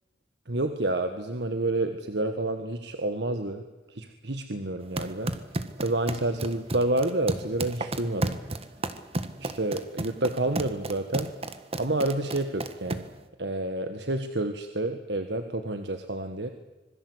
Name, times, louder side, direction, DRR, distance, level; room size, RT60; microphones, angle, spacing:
voice 1, 0.5-3.6 3.9-5.4 5.8-8.4 9.4-11.3 11.8-13.1 13.4-16.5, right 2 dB, 70° right, 7 dB, 1.7 m, -29 dB
sound 1, 4.8-13.2, right 2 dB, 35° right, 1.5 m, -33 dB
26.0 x 21.5 x 8.1 m, 1.1 s
head